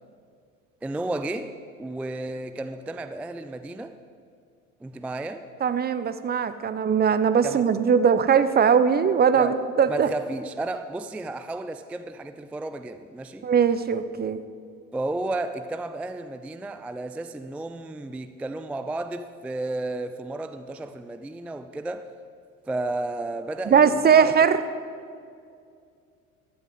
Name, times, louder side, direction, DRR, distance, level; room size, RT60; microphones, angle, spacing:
voice 1, 0.8-3.9 4.8-5.5 7.4-7.6 9.3-9.6 9.9-13.5 14.9-22.1 22.7-24.3, right 2 dB, 5° right, 10 dB, 0.4 m, -33 dB
voice 2, 5.6-10.1 13.4-14.4 23.7-24.6, right 7 dB, 25° right, 12 dB, 0.8 m, -20 dB
16.0 x 12.5 x 3.8 m, 2.3 s
figure-of-eight pair, 65°, 40 cm